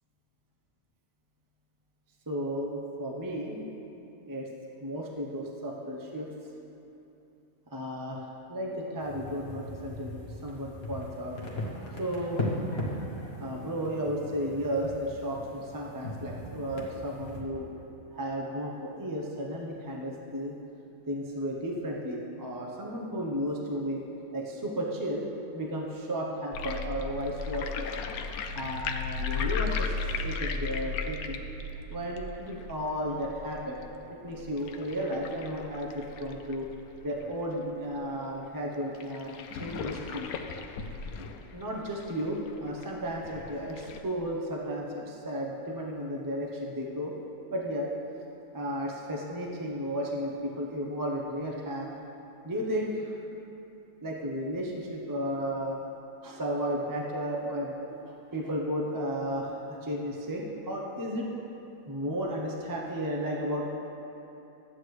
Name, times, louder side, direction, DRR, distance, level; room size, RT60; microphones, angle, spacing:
voice 1, 2.3-3.6 4.3-4.5 4.8-6.3 7.7-10.2 10.4-11.4 12.0-12.4 13.4-17.7 18.1-20.5 21.1-24.0 24.3-25.3 25.5-27.9 28.5-31.4 31.9-33.8 34.2-36.7 37.0-40.3 41.5-47.1 47.5-47.9 48.5-51.9 52.4-53.1 54.0-55.8 56.2-61.3 61.9-63.7, equal, 20° right, -2 dB, 0.7 m, -33 dB
sound 1, 9.0-17.4, left 1 dB, 45° left, 1.4 m, -38 dB
sound 2, 26.5-37.5 38.0-38.1 38.2-38.3 38.9-44.0, left 4 dB, 85° left, 1.1 m, -36 dB
12.5 x 8.7 x 3.2 m, 2.9 s
omnidirectional pair, 1.5 m